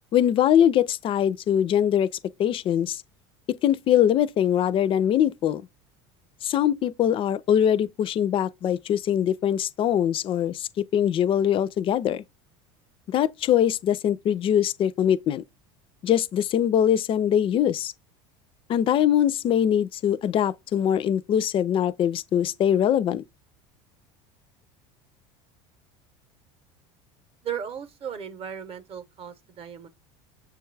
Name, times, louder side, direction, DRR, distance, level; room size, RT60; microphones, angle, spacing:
voice 1, 0.1-2.1 2.4-3.0 3.5-5.6 6.4-12.2 13.1-15.4 16.0-17.9 18.7-23.2, left 10 dB, 35° left, 0.4 m, -22 dB
voice 2, 27.4-29.9, right 8 dB, 40° right, 0.8 m, -36 dB
6.7 x 2.3 x 3.2 m
supercardioid pair, 100°, 15 cm